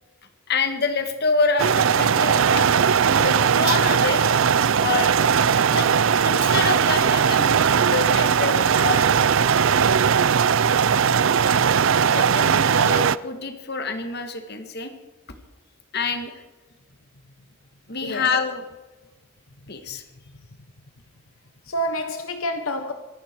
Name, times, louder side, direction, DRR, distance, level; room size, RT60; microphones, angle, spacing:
voice 1, 0.5-2.8 3.1-4.3 4.8-5.1 5.7-5.9 6.2-9.3 12.1-14.9 15.9-16.3 17.9-18.6 19.7-20.0, left 4 dB, 45° left, 7 dB, 1.8 m, -27 dB
sound 1, 1.6-13.2, right 7 dB, 60° right, 0.5 m, -19 dB
voice 2, 21.6-22.9, equal, 70° left, 7 dB, 1.3 m, -28 dB
24.5 x 12.0 x 4.6 m, 1.1 s
head